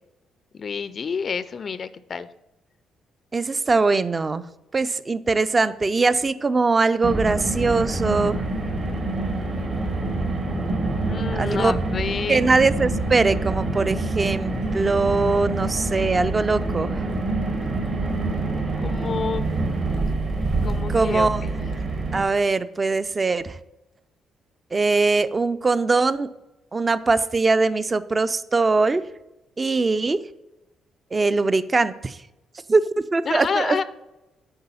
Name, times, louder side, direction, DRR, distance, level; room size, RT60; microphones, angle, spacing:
voice 1, 0.5-2.3 11.1-12.5 18.8-19.4 20.6-21.8 33.3-33.8, left 6 dB, 45° left, 14 dB, 0.3 m, -29 dB
voice 2, 3.3-4.4 4.7-8.4 11.3-11.7 12.3-17.0 20.9-21.4 22.1-23.6 24.7-26.3 26.7-29.0 29.6-30.2 31.1-32.2 32.7-32.8 33.1-33.8, right 3 dB, 30° right, 15 dB, 0.4 m, -21 dB
Car, 7.0-22.2, right 2 dB, 50° right, 1.7 m, -26 dB
8.0 x 4.7 x 5.5 m, 0.97 s
cardioid pair, 90°, 0 cm